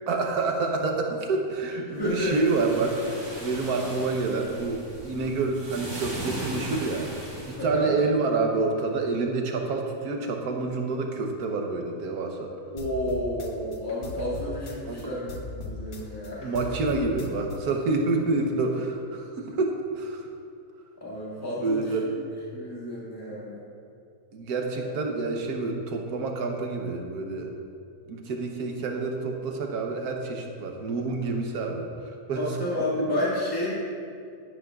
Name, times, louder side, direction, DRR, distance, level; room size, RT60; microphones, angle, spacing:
voice 1, 0.1-7.1 7.5-12.5 14.8-15.1 16.4-20.3 21.6-22.1 24.3-27.5 28.1-32.4, right 3 dB, 85° right, 2 dB, 1.5 m, -28 dB
voice 2, 1.9-2.4 7.6-7.9 12.7-16.6 21.0-22.2 22.5-23.6 24.8-24.9 31.2-31.3 32.3-33.7, left 1 dB, 15° left, -7 dB, 2.1 m, -31 dB
sound 1, 1.9-7.6, right 1 dB, 55° right, 2.5 m, -38 dB
sound 2, 12.8-15.0 15.3-17.6, left 3 dB, 55° left, 1.2 m, -38 dB
11.5 x 11.0 x 2.4 m, 2.4 s
omnidirectional pair, 1.6 m